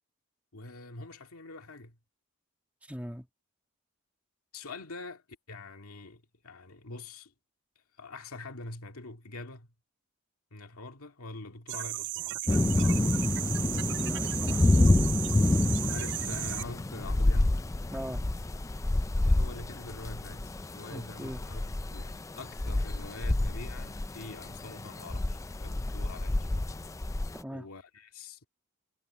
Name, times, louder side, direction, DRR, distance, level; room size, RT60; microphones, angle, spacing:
voice 1, 0.5-2.0 4.5-7.3 7.8-9.7 10.5-13.3 15.8-17.6 19.2-26.7 27.5-28.4, left 2 dB, 85° left, 2.1 m, -45 dB
voice 2, 2.9-3.3 14.0-14.8 17.9-18.2 20.9-21.4 27.3-27.7, equal, 5° right, 2.2 m, -40 dB
sound 1, 11.7-16.6, right 16 dB, 55° right, 0.4 m, -35 dB
sound 2, 12.5-27.4, left 2 dB, 15° left, 0.3 m, -28 dB
head